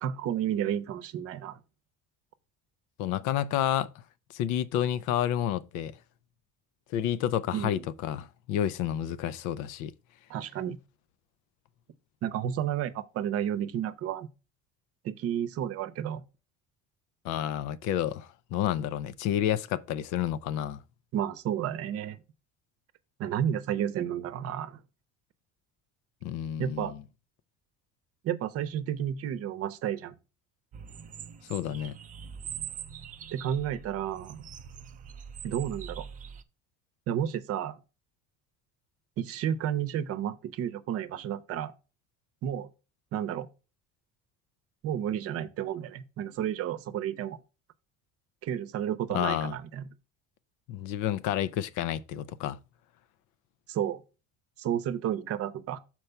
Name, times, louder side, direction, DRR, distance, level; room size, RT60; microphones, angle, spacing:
voice 1, 0.0-1.6 7.5-7.8 10.3-10.8 12.2-14.3 15.0-16.2 21.1-22.2 23.2-24.8 26.6-26.9 28.2-30.1 33.3-34.4 35.4-36.1 37.1-37.8 39.2-41.7 42.4-42.7 43.1-43.5 44.8-47.4 48.4-49.9 53.7-54.0 54.6-55.8, right 10 dB, 50° right, 0.7 m, -31 dB
voice 2, 3.0-3.9 4.3-5.9 6.9-9.9 17.2-20.8 26.2-27.0 31.5-32.0 49.1-49.5 50.7-52.6, left 11 dB, 80° left, 0.6 m, -30 dB
sound 1, 30.7-36.4, right 8 dB, 30° right, 0.4 m, -43 dB
6.8 x 4.5 x 4.5 m
cardioid pair, 160°, 30 cm